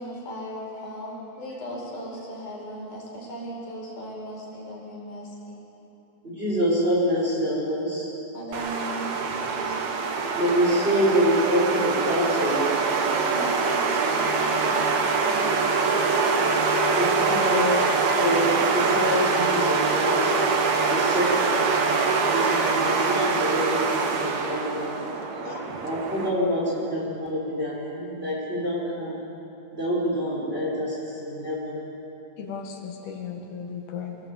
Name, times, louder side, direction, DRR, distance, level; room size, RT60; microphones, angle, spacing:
voice 1, 0.0-5.6 8.3-9.7 13.1-15.7, equal, 55° left, -3 dB, 6.6 m, -37 dB
voice 2, 6.2-8.1 10.3-12.6 17.0-20.3 20.9-21.7 22.3-24.9 25.8-29.2 29.8-31.8, equal, 15° right, -5 dB, 5.5 m, -26 dB
sound 1, 8.5-26.3, right 4 dB, 55° right, 2.5 m, -24 dB
voice 3, 25.4-25.8 32.4-34.2, left 6 dB, 90° left, 2 dB, 3.8 m, -36 dB
24.5 x 18.5 x 8.4 m, 2.9 s
omnidirectional pair, 4.3 m